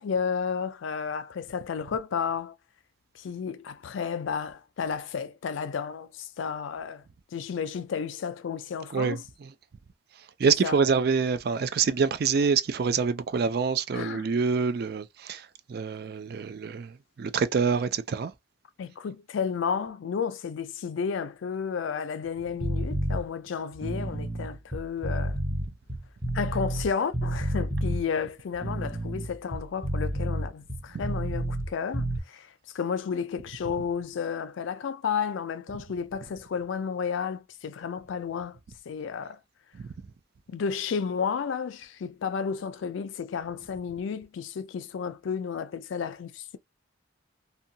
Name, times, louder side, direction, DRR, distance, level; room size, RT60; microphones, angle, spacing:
voice 1, 0.0-2.6 3.1-7.0 7.3-9.2 10.5-10.8 13.9-14.3 18.8-25.4 26.3-38.6 38.9-39.4 40.5-46.6, left 6 dB, 80° left, 0.4 m, -32 dB
voice 2, 10.4-18.3 39.8-39.9, right 5 dB, 50° right, 0.3 m, -26 dB
sound 1, 22.6-23.2 23.7-26.9 27.1-28.0 28.5-31.7 31.9-32.2, right 1 dB, 10° right, 0.6 m, -30 dB
2.7 x 2.2 x 2.6 m
head